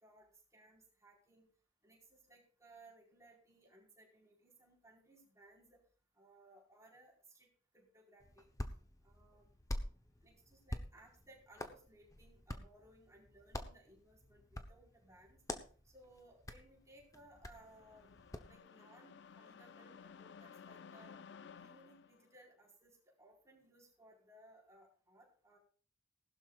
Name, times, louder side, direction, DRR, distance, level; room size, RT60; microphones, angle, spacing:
voice 1, 0.0-1.5 1.8-5.8 6.1-7.5 7.7-8.5 9.0-9.5 10.2-15.4 15.8-18.1 18.4-21.2 21.5-25.6, right 1 dB, 15° right, -3 dB, 4.6 m, -63 dB
Hands, 8.2-18.6, left 1 dB, 15° left, 0.9 m, -48 dB
sound 1, 17.2-22.3, left 6 dB, 60° left, 0.5 m, -56 dB
19.0 x 12.0 x 2.5 m, 0.41 s
head